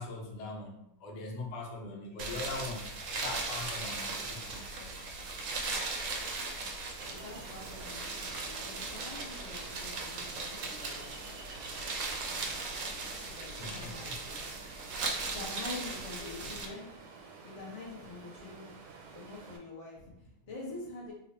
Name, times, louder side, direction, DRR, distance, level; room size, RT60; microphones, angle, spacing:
voice 1, 0.0-2.9 3.1-5.0 13.1-14.2 14.6-14.9 15.9-16.5, left 2 dB, 80° left, 0 dB, 1.3 m, -42 dB
voice 2, 1.9-2.2 7.1-11.2 13.3-14.4 15.2-17.0 17.4-18.8 19.1-21.1, left 2 dB, 35° left, -4 dB, 0.6 m, -46 dB
sound 1, 2.2-16.7, right 3 dB, 65° right, 0.8 m, -38 dB
Ocean, 7.0-19.6, right 4 dB, 85° right, 1.2 m, -50 dB
3.0 x 2.3 x 4.0 m, 0.80 s
omnidirectional pair, 1.8 m